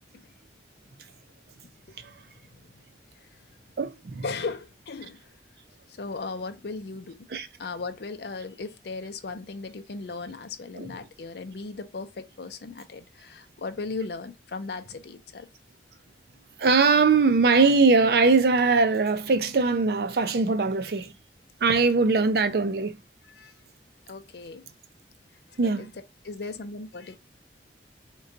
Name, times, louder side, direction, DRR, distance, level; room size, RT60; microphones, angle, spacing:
voice 1, 1.9-2.6 4.2-5.3 5.9-7.3 7.6-15.5 23.3-23.5 24.1-24.7 25.5-25.9 26.2-27.2, left 4 dB, 65° left, 0.5 m, -37 dB
voice 2, 3.8-4.2 7.3-7.5 10.8-10.9 16.6-21.1 21.6-23.0 25.6-25.9, right 4 dB, 60° right, 0.4 m, -21 dB
3.8 x 2.3 x 2.5 m
head